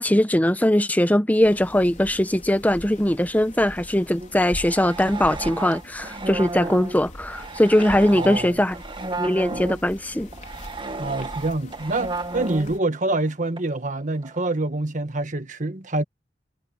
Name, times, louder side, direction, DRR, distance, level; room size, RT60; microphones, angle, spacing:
voice 1, 0.0-8.7 9.2-10.3, left 1 dB, 10° left, 1.0 m, -20 dB
sound 1, 1.4-12.8, left 1 dB, 45° left, 4.4 m, -42 dB
sound 2, 4.2-9.9 10.3-13.3 13.6-13.7 14.2-14.5, right 3 dB, 30° right, 1.6 m, -33 dB
voice 2, 8.1-8.6 11.0-16.0, right 2 dB, 45° right, 1.5 m, -26 dB
head